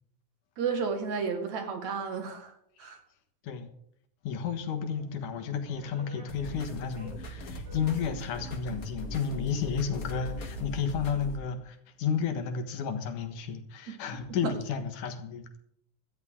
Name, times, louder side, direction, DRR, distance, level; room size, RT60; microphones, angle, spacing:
voice 1, 0.6-2.5 2.8-3.0, right 5 dB, 65° right, 5 dB, 3.0 m, -32 dB
voice 2, 4.2-15.5, left 6 dB, 80° left, 7 dB, 2.9 m, -32 dB
sound 1, 5.0-10.6, right 1 dB, 40° right, 4.0 m, -49 dB
sound 2, 6.3-11.4, left 1 dB, 35° left, 1.6 m, -40 dB
17.0 x 13.0 x 3.7 m, 0.70 s
omnidirectional pair, 3.5 m